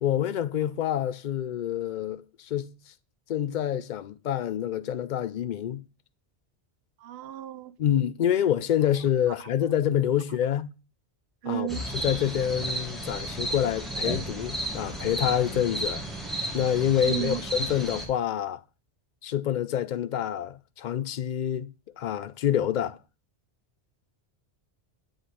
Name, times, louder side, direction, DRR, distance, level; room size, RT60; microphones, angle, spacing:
voice 1, 0.0-2.7 3.3-5.8 7.8-10.7 11.4-11.7 11.9-16.0 16.5-18.6 19.2-21.7 22.0-23.0, left 10 dB, 55° left, 0.6 m, -27 dB
voice 2, 7.0-7.7 11.4-11.8 17.0-17.4, right 14 dB, 70° right, 0.8 m, -33 dB
sound 1, 11.7-18.0, right 1 dB, ahead, 1.8 m, -33 dB
7.8 x 5.2 x 4.2 m
omnidirectional pair, 1.1 m